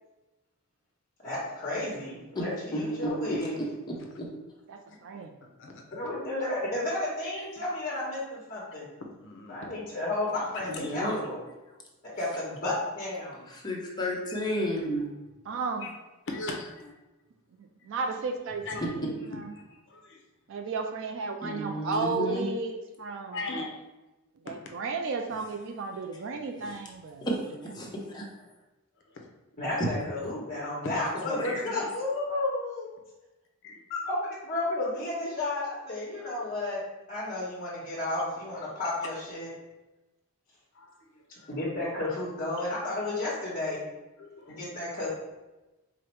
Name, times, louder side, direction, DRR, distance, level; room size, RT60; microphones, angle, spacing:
voice 1, 1.2-3.5 5.9-8.8 9.5-11.4 12.0-13.4 29.6-32.9 33.9-36.8 37.1-39.5 41.5-43.8 44.5-45.1, left 2 dB, 35° left, -9 dB, 1.2 m, -32 dB
voice 2, 2.7-4.3 10.6-11.2 13.5-15.0 21.4-22.4 27.3-27.4 27.6-27.9 28.1-28.3 29.8-29.9 31.3-31.7, equal, 20° left, -3 dB, 0.8 m, -32 dB
voice 3, 4.7-5.3 15.5-15.9 17.6-19.5 20.5-23.4 24.4-27.3, right 4 dB, 60° right, 4 dB, 0.4 m, -34 dB
voice 4, 5.4-6.1 7.4-7.5 9.2-9.7 15.8-15.9 16.3-16.9 18.7-18.8 19.6-20.2 23.3-23.8 24.5-24.6 30.8-30.9 33.6-33.8 40.7-41.0 41.4-41.5 44.2-44.6, left 2 dB, 55° left, 2 dB, 0.6 m, -39 dB
4.8 x 2.1 x 4.4 m, 1.1 s
head